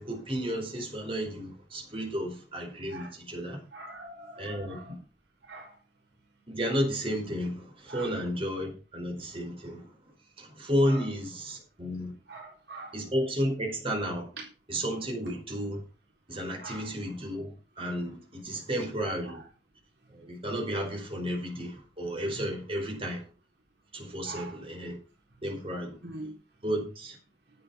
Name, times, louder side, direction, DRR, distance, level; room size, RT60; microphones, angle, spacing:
voice 1, 0.0-3.6 4.4-4.9 6.5-9.9 10.4-12.1 12.9-14.3 14.7-15.8 16.3-19.4 20.1-23.2 23.9-25.0 25.4-26.0 26.6-27.1, equal, 30° right, 0 dB, 4.9 m, -32 dB
voice 2, 3.7-4.9 5.5-5.7 7.9-8.1 10.9-11.0 12.3-12.9 16.6-16.9 18.4-18.6 19.3-19.4 24.2-24.5 26.0-26.3, right 2 dB, 70° right, 0 dB, 4.0 m, -43 dB
11.0 x 8.6 x 5.7 m, 0.33 s
head